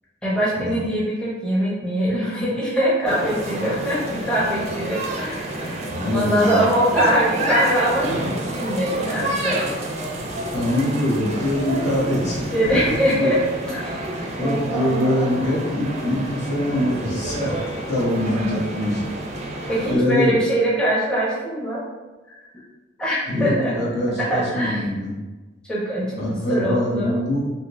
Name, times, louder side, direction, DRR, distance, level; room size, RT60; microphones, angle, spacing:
voice 1, 0.2-9.6 12.5-14.1 14.4-15.3 19.7-21.8 22.5-22.6 23.0-24.8 25.7-26.2 26.5-27.2, equal, 5° left, -7 dB, 0.7 m, -23 dB
sound 1, 3.1-20.0, right 1 dB, 35° right, 0.4 m, -29 dB
voice 2, 5.9-6.7 10.5-13.3 14.4-17.5 17.9-19.0 19.9-20.3 23.3-25.2 26.2-27.4, left 1 dB, 55° left, -4 dB, 0.9 m, -23 dB
3.5 x 2.7 x 2.5 m, 1.2 s
head